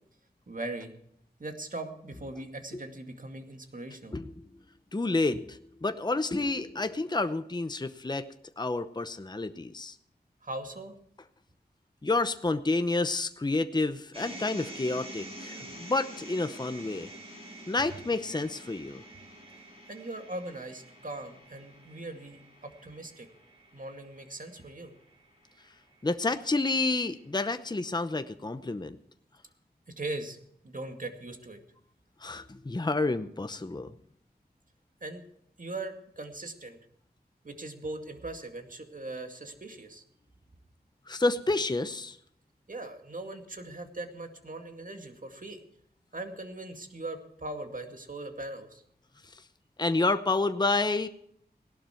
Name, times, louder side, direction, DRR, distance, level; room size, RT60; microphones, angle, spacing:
voice 1, 0.5-0.9 1.4-4.2 10.4-11.0 15.7-15.8 19.9-23.3 23.7-24.9 30.0-30.4 30.6-31.6 35.0-35.2 35.6-36.8 37.4-40.0 42.7-45.6 46.1-48.8, right 2 dB, 55° right, 5 dB, 2.3 m, -40 dB
voice 2, 4.9-8.2 8.6-10.0 12.0-17.1 17.7-19.0 26.0-29.0 32.2-33.9 41.1-42.2 49.8-51.1, left 3 dB, 25° left, 10 dB, 0.8 m, -29 dB
sound 1, 14.1-26.3, right 1 dB, 35° right, 6.6 m, -47 dB
17.5 x 12.0 x 4.5 m, 0.69 s
wide cardioid pair, 55°, 17 cm